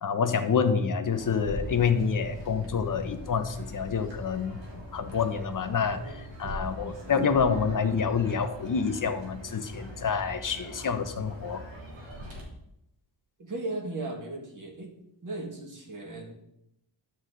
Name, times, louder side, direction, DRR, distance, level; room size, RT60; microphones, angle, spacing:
voice 1, 0.0-4.6 4.9-6.1 6.4-11.6, left 6 dB, 40° left, 8 dB, 0.9 m, -27 dB
sound 1, 1.1-12.4, equal, 70° right, 3.2 m, -41 dB
voice 2, 5.9-6.2 13.4-14.9 15.2-16.3, right 2 dB, 40° right, 1 dB, 2.0 m, -37 dB
11.0 x 8.0 x 3.9 m, 0.81 s
wide cardioid pair, 175°, 47 cm